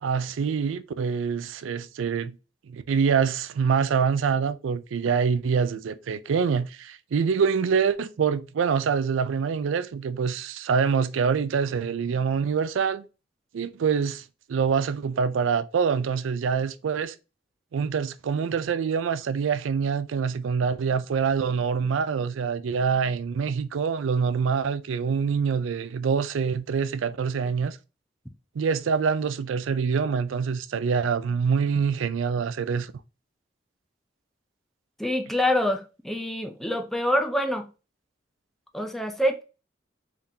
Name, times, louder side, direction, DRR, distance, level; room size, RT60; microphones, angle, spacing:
voice 1, 0.0-2.4 2.7-13.0 13.5-14.2 14.5-17.1 17.7-27.8 28.6-32.9, right 6 dB, 85° right, 0.4 m, -25 dB
voice 2, 35.0-37.7 38.7-39.4, left 1 dB, ahead, 0.4 m, -26 dB
3.7 x 3.5 x 2.7 m
head